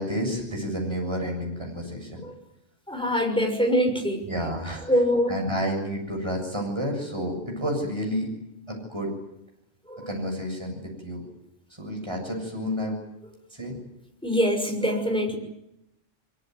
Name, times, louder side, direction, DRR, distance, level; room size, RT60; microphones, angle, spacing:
voice 1, 0.0-2.2 4.2-4.8 5.3-8.3 8.7-9.1 10.1-11.2 11.8-13.0 13.6-13.7, equal, 20° right, 1 dB, 7.6 m, -30 dB
voice 2, 2.9-4.2 4.9-5.4 9.9-10.1 14.2-15.4, equal, 5° left, 3 dB, 6.1 m, -24 dB
24.0 x 23.5 x 9.6 m, 0.85 s
omnidirectional pair, 1.3 m